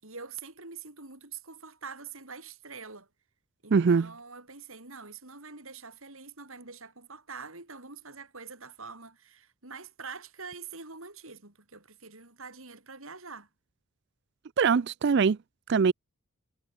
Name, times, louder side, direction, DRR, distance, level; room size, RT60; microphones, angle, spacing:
voice 1, 0.0-3.1 3.6-13.5, right 5 dB, 70° right, 5.4 m, -45 dB
voice 2, 3.7-4.1 14.6-15.4 15.7-15.9, right 5 dB, 50° right, 0.4 m, -22 dB
head